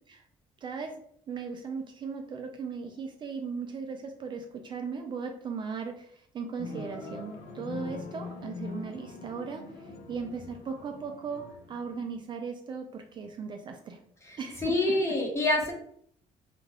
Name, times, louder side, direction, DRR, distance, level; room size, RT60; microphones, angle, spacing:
voice 1, 0.6-1.0 1.3-14.0 14.4-15.0, right 5 dB, 40° right, 4 dB, 0.3 m, -37 dB
sound 1, 6.6-12.2, left 4 dB, 75° left, 0.6 m, -42 dB
voice 2, 14.2-15.7, left 2 dB, 20° left, 0 dB, 0.8 m, -27 dB
2.4 x 2.3 x 3.3 m, 0.63 s
cardioid pair, 125°, 13 cm